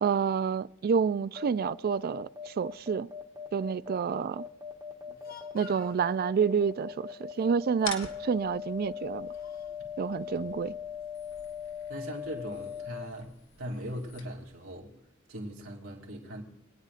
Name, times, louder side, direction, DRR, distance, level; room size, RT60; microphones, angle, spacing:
voice 1, 0.0-3.1 3.5-4.4 5.5-9.3 10.0-10.7, right 6 dB, 50° right, 0.3 m, -29 dB
sound 1, 1.4-13.1, left 7 dB, 20° right, 1.1 m, -40 dB
Speech, 5.0-6.0 7.3-7.6 7.8-8.2 8.9-9.8, left 4 dB, 45° left, 1.0 m, -50 dB
sound 2, 7.8-14.8, left 5 dB, 65° left, 1.7 m, -47 dB
voice 2, 11.9-14.9 15.3-16.4, equal, 80° right, 2.8 m, -40 dB
26.5 x 9.6 x 2.5 m
head